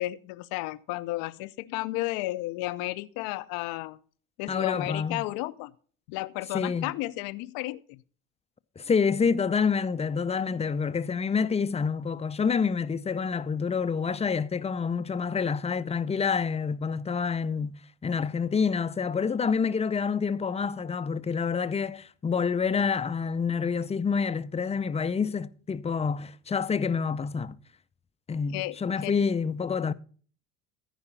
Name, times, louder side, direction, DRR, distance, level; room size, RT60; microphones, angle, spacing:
voice 1, 0.0-4.0 4.4-5.7 6.1-8.0 28.5-29.1, left 19 dB, 70° left, 0.6 m, -33 dB
voice 2, 4.5-5.2 6.5-6.9 8.8-27.6 28.3-29.9, left 5 dB, 15° left, 0.5 m, -28 dB
14.0 x 4.9 x 5.5 m
hypercardioid pair, 75°, 37 cm